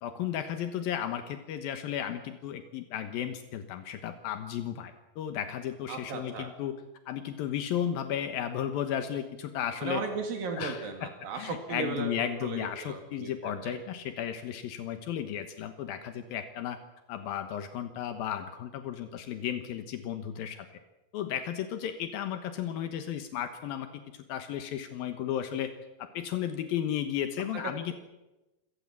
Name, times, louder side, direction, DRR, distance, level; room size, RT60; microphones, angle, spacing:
voice 1, 0.0-6.8 7.1-10.0 10.5-16.8 17.1-20.7 21.1-24.0 24.3-25.7 26.0-27.9, left 10 dB, 80° left, 8 dB, 3.0 m, -34 dB
voice 2, 5.9-6.5 9.8-12.1 12.4-13.8, right 4 dB, 75° right, 4 dB, 4.1 m, -36 dB
27.0 x 18.0 x 7.5 m, 1.0 s
omnidirectional pair, 4.2 m